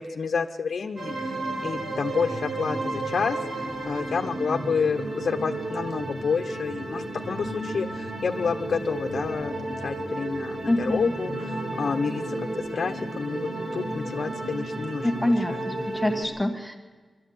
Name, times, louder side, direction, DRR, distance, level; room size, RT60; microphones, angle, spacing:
voice 1, 0.0-12.4 12.7-15.6, left 5 dB, 75° left, 5 dB, 0.9 m, -29 dB
sound 1, 1.0-16.2, right 2 dB, 60° right, 6.2 m, -32 dB
voice 2, 10.7-11.1 15.0-16.8, left 1 dB, ahead, 5 dB, 1.6 m, -25 dB
23.0 x 13.5 x 9.5 m, 1.4 s
wide cardioid pair, 120°, 0 cm